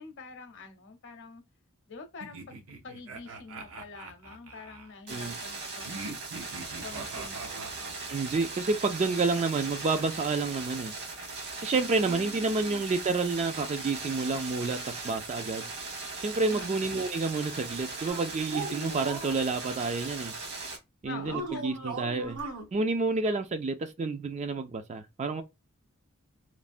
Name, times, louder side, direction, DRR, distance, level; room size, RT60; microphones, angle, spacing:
voice 1, 0.0-1.4 1.9-6.1 6.8-7.7 11.9-12.8 16.5-17.0 21.0-21.5, left 4 dB, 55° left, 0.6 m, -46 dB
sound 1, 2.2-4.9 5.8-8.4, right 3 dB, 70° right, 0.7 m, -43 dB
sound 2, 5.1-20.8, right 3 dB, 50° right, 1.1 m, -39 dB
voice 2, 8.1-10.9 11.6-15.7 16.2-20.3 21.0-22.4 22.7-25.4, right 3 dB, 30° right, 0.3 m, -29 dB
sound 3, 18.1-19.4 21.2-22.6, right 3 dB, 85° right, 1.4 m, -38 dB
3.2 x 2.1 x 2.5 m
head